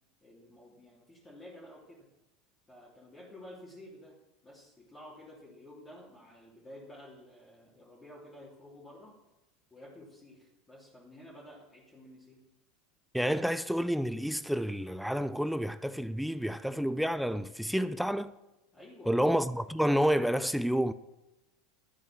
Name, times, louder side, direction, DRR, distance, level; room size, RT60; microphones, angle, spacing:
voice 1, 0.2-2.1 2.7-4.2 4.4-9.2 9.7-12.5 18.7-19.2, left 1 dB, 15° left, 3.2 m, -51 dB
voice 2, 13.1-18.3 19.1-20.9, equal, ahead, 0.5 m, -29 dB
12.0 x 8.5 x 6.2 m
figure-of-eight pair, 80°, 0 cm